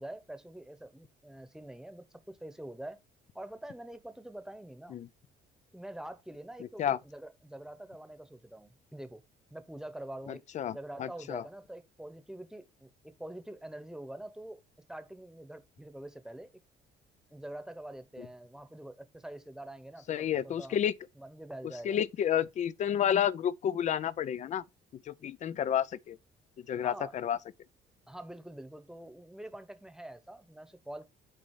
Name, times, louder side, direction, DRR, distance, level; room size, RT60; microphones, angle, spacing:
voice 1, 0.0-3.0 3.3-5.0 5.7-9.2 9.5-16.5 17.3-20.8 21.1-22.0 26.8-27.1 28.1-31.1, right 1 dB, 5° right, 1.1 m, -45 dB
voice 2, 10.5-11.4 20.1-20.9 21.8-24.6 25.1-26.2 26.7-27.4, left 9 dB, 45° left, 0.5 m, -30 dB
6.5 x 4.0 x 5.6 m
cardioid pair, 110°, 17 cm